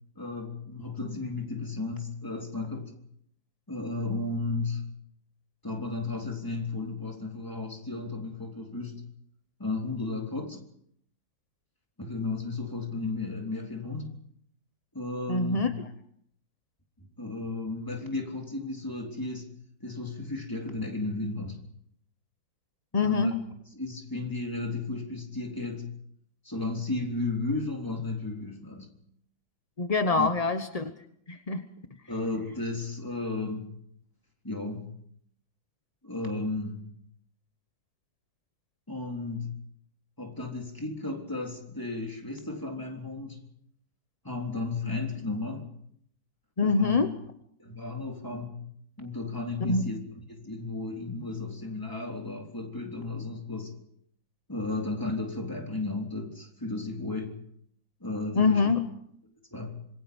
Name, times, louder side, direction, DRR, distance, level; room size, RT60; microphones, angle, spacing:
voice 1, 0.2-2.9 3.7-4.9 5.6-9.0 9.6-10.7 12.0-14.2 14.9-15.7 17.0-19.5 19.8-21.6 22.9-23.3 23.7-25.9 26.4-28.9 30.1-30.3 32.1-33.7 34.4-34.9 36.0-36.9 38.9-39.5 40.2-43.4 44.2-45.7 46.6-47.0 47.6-48.6 49.0-50.0 50.3-53.8 54.5-57.4 58.0-58.7 59.5-59.8, left 3 dB, 10° left, 1 dB, 3.5 m, -34 dB
voice 2, 15.3-15.7 22.9-23.4 29.8-30.9 31.3-31.6 46.6-47.1 49.6-49.8 58.4-58.9, left 4 dB, 30° left, 8 dB, 0.7 m, -24 dB
26.0 x 22.5 x 5.3 m, 0.67 s
omnidirectional pair, 2.1 m